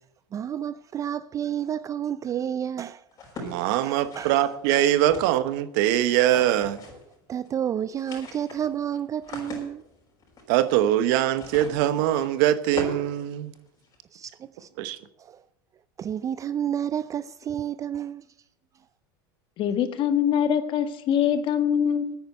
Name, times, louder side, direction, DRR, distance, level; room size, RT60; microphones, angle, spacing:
voice 1, 0.3-3.0 3.3-3.5 3.8-4.5 7.3-9.8 14.1-14.7 15.2-15.4 16.0-18.3, right 9 dB, 30° right, 0.4 m, -30 dB
sound 1, 3.1-5.6 6.2-7.2 7.4-7.5 7.8-14.0, left 3 dB, 30° left, 5.8 m, -41 dB
voice 2, 3.4-6.8 10.5-13.5 14.8-15.0, right 12 dB, 70° right, 1.0 m, -22 dB
voice 3, 19.6-22.1, left 8 dB, 45° left, 1.6 m, -23 dB
9.6 x 9.4 x 9.2 m
supercardioid pair, 110°, 11 cm